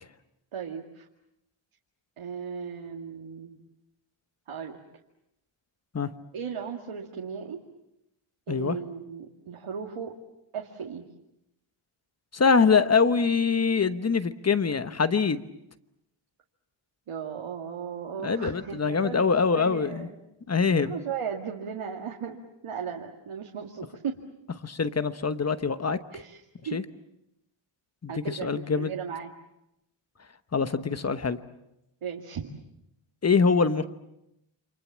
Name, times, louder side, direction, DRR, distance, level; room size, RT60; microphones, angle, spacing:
voice 1, 0.5-1.1 2.2-3.6 4.5-4.8 6.3-7.6 8.5-10.1 10.5-11.1 17.1-20.2 20.8-22.4 22.6-24.2 26.1-26.8 28.1-29.3 32.0-32.5, right 7 dB, 80° right, 1 dB, 2.3 m, -36 dB
voice 2, 12.3-15.4 18.2-20.1 20.5-20.9 24.6-26.0 26.7-26.8 28.0-28.9 30.5-31.4 33.2-33.8, left 5 dB, 30° left, 12 dB, 1.1 m, -24 dB
29.0 x 27.0 x 7.4 m, 0.85 s
wide cardioid pair, 160°, 50 cm